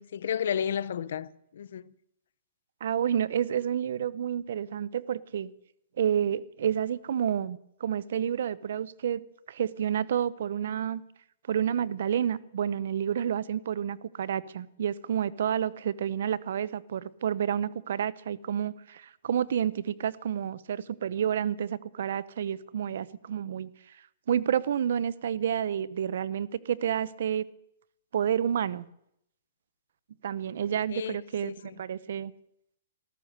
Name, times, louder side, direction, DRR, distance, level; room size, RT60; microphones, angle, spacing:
voice 1, 0.0-1.9 30.9-31.7, left 8 dB, 70° left, 0.6 m, -33 dB
voice 2, 2.8-5.5 6.0-11.0 11.5-23.7 24.3-27.5 28.1-28.9 30.2-32.3, right 9 dB, 70° right, 0.7 m, -29 dB
14.5 x 13.5 x 6.6 m
hypercardioid pair, 155°, 0 cm